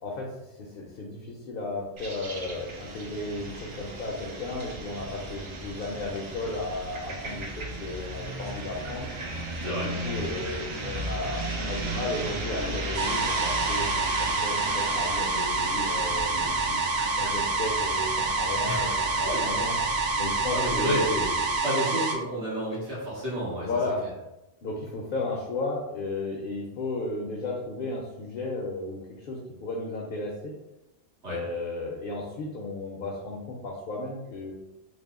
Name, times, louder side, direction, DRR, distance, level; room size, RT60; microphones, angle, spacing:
voice 1, 0.0-9.1 9.6-14.1 14.4-19.7 20.2-20.9 23.6-24.3 24.6-30.5 31.3-34.5, left 2 dB, 60° left, -1 dB, 0.7 m, -34 dB
sound 1, 2.0-21.6, right 2 dB, 55° right, 0.3 m, -36 dB
sound 2, 12.9-22.2, right 3 dB, 70° right, 0.8 m, -27 dB
voice 2, 18.7-19.0 19.3-19.6 20.5-23.7 31.2-31.4, equal, 85° right, -8 dB, 1.7 m, -30 dB
3.4 x 2.1 x 3.6 m, 0.94 s
omnidirectional pair, 1.1 m